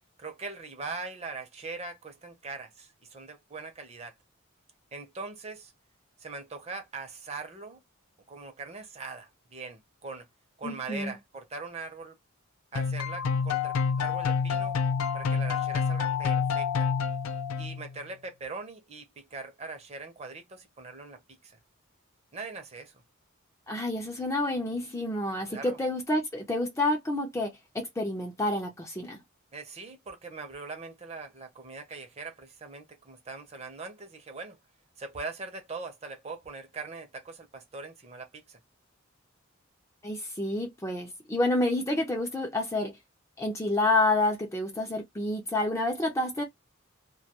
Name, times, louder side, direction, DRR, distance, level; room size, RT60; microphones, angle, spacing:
voice 1, 0.2-4.1 4.9-5.7 6.2-7.8 8.3-10.3 10.6-12.2 12.7-14.8 15.1-16.9 17.6-21.5 22.3-22.9 25.5-25.8 29.5-34.6 35.0-38.6, right 3 dB, 30° right, 0.6 m, -41 dB
voice 2, 10.6-11.1 23.7-29.2 40.0-43.0 43.4-46.4, left 2 dB, 15° left, 0.4 m, -29 dB
sound 1, 12.8-17.9, left 6 dB, 90° left, 0.4 m, -28 dB
2.2 x 2.2 x 2.8 m
head